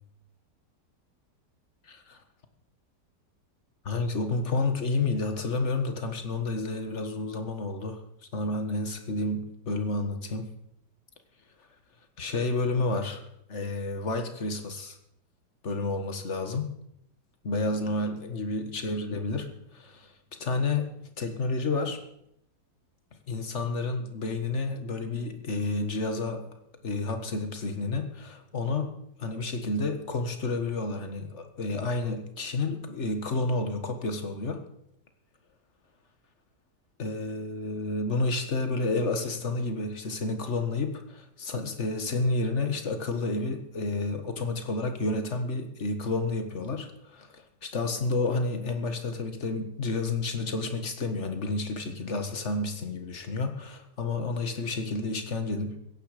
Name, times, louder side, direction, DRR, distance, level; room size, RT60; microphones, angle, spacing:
voice 1, 1.9-2.2 3.9-8.0 8.3-10.5 12.2-15.0 15.6-16.7 17.4-20.1 20.4-22.0 23.3-26.5 26.8-28.9 29.2-34.6 37.0-55.8, left 3 dB, 45° left, 7 dB, 1.8 m, -30 dB
17.0 x 14.0 x 5.1 m, 0.78 s
omnidirectional pair, 1.8 m